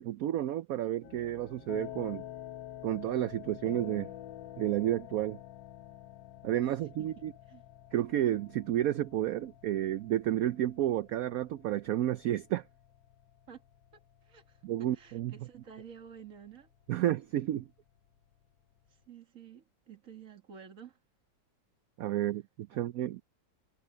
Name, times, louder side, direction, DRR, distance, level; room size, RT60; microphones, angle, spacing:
voice 1, 0.0-2.2 2.8-4.1 4.6-5.4 6.4-7.3 7.9-12.6 14.6-15.3 16.9-17.7 22.0-23.2, right 12 dB, 85° right, 0.7 m, -31 dB
sound 1, 1.0-19.0, left 13 dB, 75° left, 1.5 m, -49 dB
voice 2, 7.0-7.6 13.5-13.6 14.2-16.7 18.9-21.0 22.7-22.8, right 7 dB, 45° right, 2.5 m, -51 dB
omnidirectional pair, 2.1 m